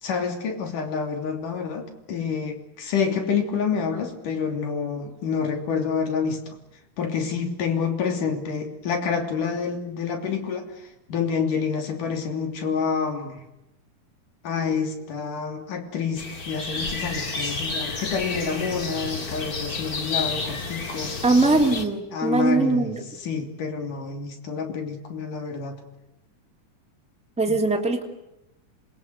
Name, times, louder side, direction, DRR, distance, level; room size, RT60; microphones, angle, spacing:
voice 1, 0.0-6.6 7.0-13.4 14.4-21.1 22.1-22.9 23.2-25.8 27.5-27.6, left 6 dB, 85° left, 4 dB, 4.6 m, -28 dB
sound 1, 16.2-21.8, left 3 dB, 30° left, 2.4 m, -30 dB
voice 2, 21.2-23.1 27.4-28.0, right 3 dB, ahead, 2 dB, 2.3 m, -21 dB
27.0 x 21.5 x 8.1 m, 0.90 s
omnidirectional pair, 3.6 m